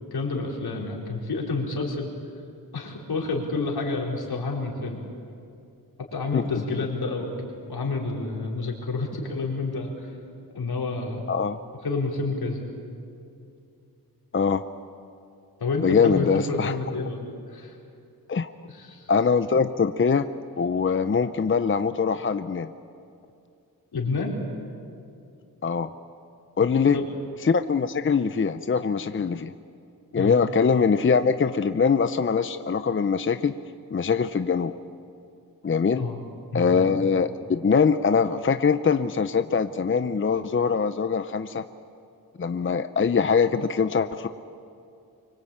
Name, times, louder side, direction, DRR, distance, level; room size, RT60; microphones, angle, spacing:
voice 1, 0.1-2.1 2.7-5.0 6.0-7.3 7.7-10.1 10.5-11.2 11.8-12.7 15.6-17.2 17.5-17.8 18.7-19.1 23.9-24.4 26.6-27.0 30.2-30.4 35.9-36.2 36.5-36.7, left 3 dB, 80° left, -1 dB, 4.6 m, -29 dB
voice 2, 11.3-11.6 14.3-14.6 15.8-16.7 18.3-18.5 19.1-20.3 20.6-22.7 25.6-25.9 26.6-27.0 27.4-29.5 30.1-33.5 33.9-34.7 35.6-36.1 36.5-41.6 42.4-44.3, left 5 dB, 35° left, 10 dB, 0.6 m, -23 dB
25.5 x 24.0 x 8.7 m, 2.5 s
wide cardioid pair, 155°, 37 cm